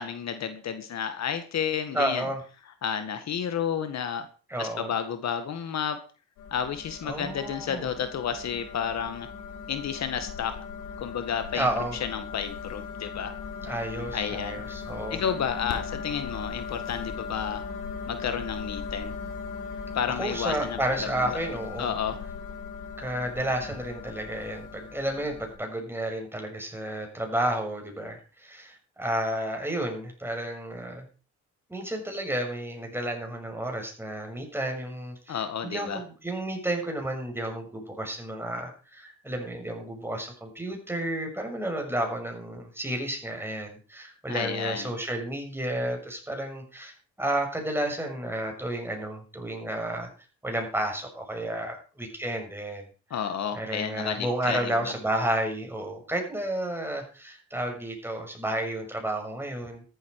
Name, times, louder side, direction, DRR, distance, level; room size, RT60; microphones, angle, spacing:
voice 1, 0.0-2.3 2.8-4.3 4.6-6.0 6.5-9.3 9.7-10.6 11.0-11.7 12.0-13.3 14.1-14.6 15.1-17.6 18.1-19.1 19.9-20.8 21.2-21.4 21.8-22.2 35.3-36.0 44.3-44.9 53.1-54.9, left 8 dB, 60° left, 10 dB, 1.8 m, -31 dB
voice 2, 1.9-2.4 4.5-4.9 7.0-7.9 11.5-12.0 13.6-15.2 20.2-21.9 23.0-31.0 31.7-50.1 50.4-52.8 53.5-59.8, right 1 dB, 5° right, 2 dB, 6.4 m, -31 dB
sound 1, 6.4-25.6, left 5 dB, 85° left, 3.7 m, -38 dB
13.5 x 12.5 x 4.8 m, 0.36 s
cardioid pair, 90°, 30 cm